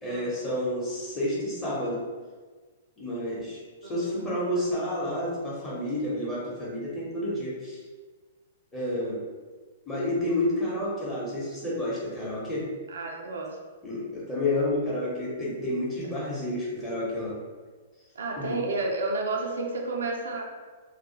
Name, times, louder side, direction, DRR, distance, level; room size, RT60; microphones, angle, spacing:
voice 1, 0.0-2.0 3.0-7.8 8.7-9.2 9.9-12.7 13.8-17.4 18.4-18.6, left 1 dB, 15° left, -7 dB, 1.0 m, -30 dB
voice 2, 3.8-4.4 12.9-13.6 18.2-20.4, right 3 dB, 75° right, 1 dB, 0.4 m, -31 dB
2.3 x 2.1 x 2.8 m, 1.4 s
hypercardioid pair, 120°, 0 cm